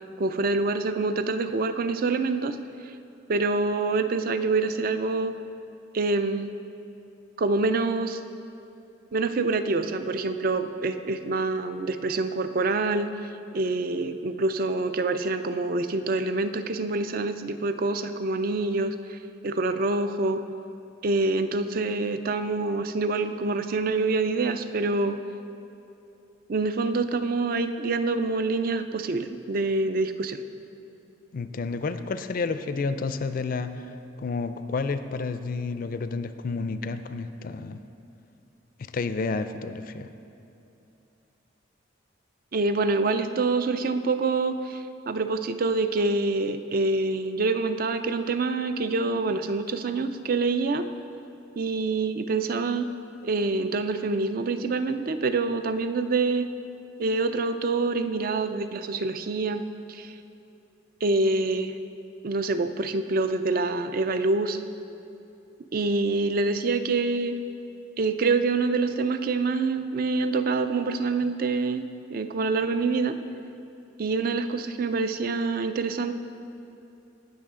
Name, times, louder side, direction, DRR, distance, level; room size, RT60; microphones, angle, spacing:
voice 1, 0.2-2.6 2.9-3.0 3.3-5.4 5.9-6.5 7.4-8.2 9.1-13.1 13.5-19.2 19.4-20.4 21.0-25.2 26.5-30.4 42.5-50.9 51.6-52.9 53.2-56.5 57.0-60.1 61.0-61.7 62.2-64.6 65.7-67.4 68.0-73.2 74.0-76.1, right 3 dB, 50° right, 10 dB, 0.4 m, -26 dB
voice 2, 31.3-33.9 34.2-37.8 38.8-40.1, left 4 dB, 45° left, 11 dB, 0.4 m, -30 dB
17.0 x 6.2 x 3.7 m, 2.8 s
head